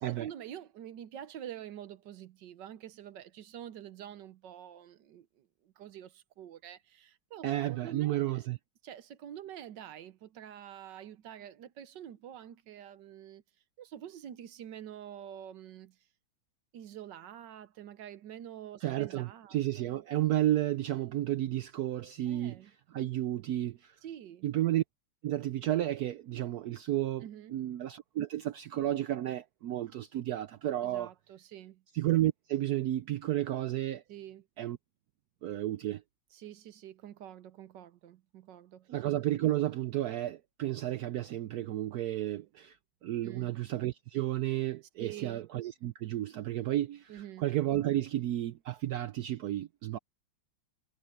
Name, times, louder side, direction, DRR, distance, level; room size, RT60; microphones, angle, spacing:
voice 1, 0.0-8.4 8.8-13.4 13.8-16.0 16.7-20.0 22.3-22.7 24.0-24.4 27.2-27.6 30.8-31.8 34.1-34.5 36.3-38.9 43.2-43.6 45.0-45.4 47.1-47.4, right 10 dB, 70° right, 1.4 m, -47 dB
voice 2, 7.4-8.6 18.8-24.0 24.4-24.8 25.2-31.1 31.9-34.0 34.6-34.8 35.4-36.0 38.9-42.8 43.0-50.0, right 13 dB, 85° right, 0.8 m, -32 dB
omnidirectional pair, 2.2 m